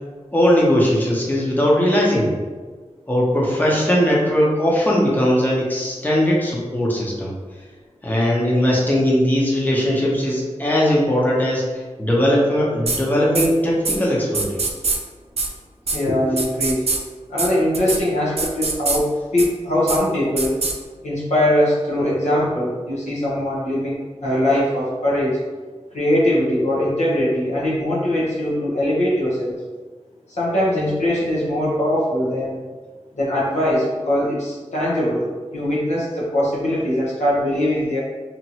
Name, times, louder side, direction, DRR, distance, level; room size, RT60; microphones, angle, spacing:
voice 1, 0.3-2.3 3.1-7.3 8.0-11.6 12.0-14.7, equal, 15° left, -4 dB, 0.8 m, -19 dB
sound 1, 12.9-13.0 13.3-13.5 13.8-14.0 14.3-15.0 15.4-15.5 15.9-16.0 16.4-17.0 17.4-17.5 17.7-18.0 18.4-19.0 19.4-19.5 19.9-20.0 20.4-20.7, right 3 dB, 65° right, 0.4 m, -22 dB
voice 2, 15.9-16.8 17.3-20.6 21.0-25.4 25.9-29.6 30.3-32.6 33.1-38.0, left 1 dB, 85° left, -6 dB, 0.8 m, -21 dB
2.9 x 2.5 x 2.8 m, 1.4 s
wide cardioid pair, 60°, 12 cm